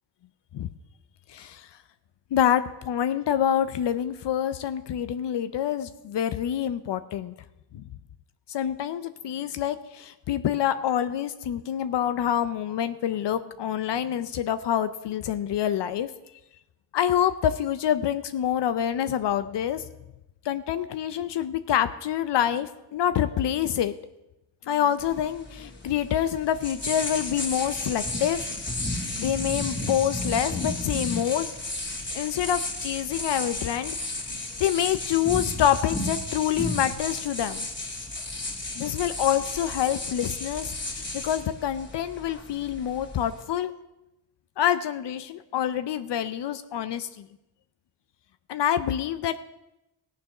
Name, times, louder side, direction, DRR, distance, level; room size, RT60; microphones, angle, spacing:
voice 1, 1.3-1.7 2.3-7.3 7.7-7.8 8.5-16.1 16.9-19.8 20.4-23.9 24.7-28.4 29.2-31.5 32.1-34.1 34.6-37.7 38.8-43.7 44.6-47.1 48.5-49.4, left 10 dB, 75° left, 11 dB, 0.6 m, -26 dB
sound 1, 25.0-43.4, left 2 dB, 25° left, 2.7 m, -33 dB
16.0 x 6.8 x 6.0 m, 0.95 s
cardioid pair, 70°, 42 cm